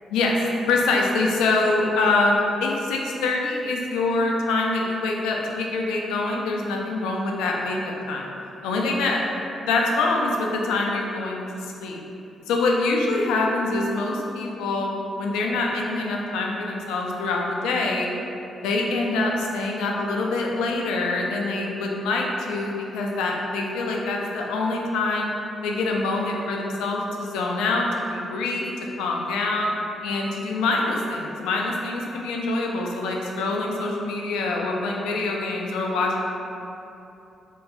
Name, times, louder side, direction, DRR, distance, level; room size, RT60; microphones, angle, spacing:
voice 1, 0.7-8.3 8.6-9.2 9.6-12.0 12.5-18.1 18.6-25.3 25.6-28.7 29.0-29.7 30.0-36.2, left 3 dB, 85° left, -1 dB, 0.4 m, -25 dB
2.7 x 2.2 x 3.9 m, 2.8 s
hypercardioid pair, 50°, 0 cm